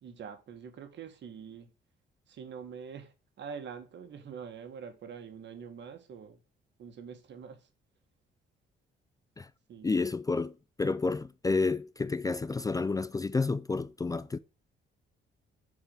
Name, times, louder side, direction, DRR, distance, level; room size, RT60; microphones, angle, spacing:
voice 1, 0.0-1.7 2.3-6.4 6.8-7.7 9.7-9.9, right 6 dB, 65° right, 1.8 m, -45 dB
voice 2, 9.8-14.4, left 3 dB, 20° left, 0.4 m, -30 dB
7.2 x 4.8 x 5.5 m
cardioid pair, 90°, 20 cm